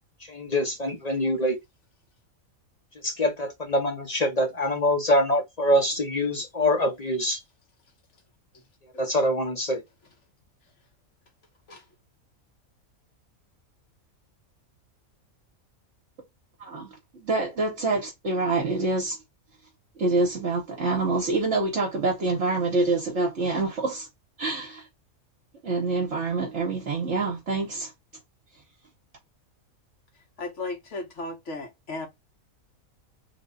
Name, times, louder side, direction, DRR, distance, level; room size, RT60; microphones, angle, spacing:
voice 1, 0.3-1.6 3.0-7.4 9.0-9.8, left 1 dB, 40° left, 0.7 m, -24 dB
voice 2, 6.0-6.4 8.5-8.6 8.9-9.0 11.7-11.8 30.4-32.1, left 2 dB, 60° left, 1.5 m, -36 dB
voice 3, 16.6-19.2 20.0-24.1 24.4-24.8 25.6-27.9, right 3 dB, 60° right, 1.1 m, -26 dB
3.3 x 2.2 x 3.8 m
omnidirectional pair, 1.5 m